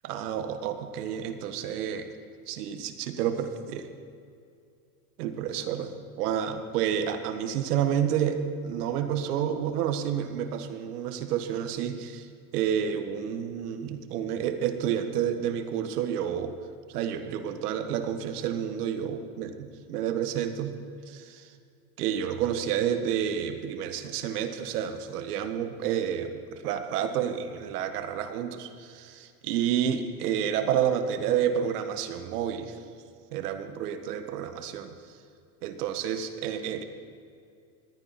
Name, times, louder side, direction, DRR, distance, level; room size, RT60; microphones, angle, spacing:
voice 1, 0.0-2.1 2.5-3.9 5.2-5.9 6.2-12.3 12.5-16.5 16.9-20.8 21.1-21.5 22.0-32.8 33.3-34.9 35.6-36.8, right 9 dB, 75° right, 8 dB, 1.7 m, -30 dB
20.0 x 15.0 x 4.3 m, 2.4 s
supercardioid pair, 115°, 46 cm